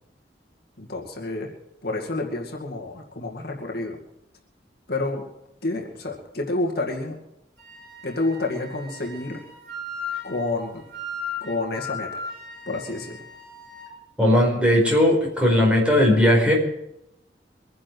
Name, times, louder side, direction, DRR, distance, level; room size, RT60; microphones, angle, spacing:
voice 1, 0.8-1.5 1.8-4.0 4.9-5.2 5.6-7.2 8.0-9.4 10.2-10.8 11.4-12.2 12.7-13.2, left 2 dB, 55° left, 0 dB, 2.4 m, -29 dB
Wind instrument woodwind instrument, 7.6-13.9, left 3 dB, 55° right, 7.5 m, -37 dB
voice 2, 14.2-16.5, left 1 dB, 5° right, -2 dB, 4.8 m, -18 dB
23.5 x 11.0 x 4.7 m, 0.82 s
head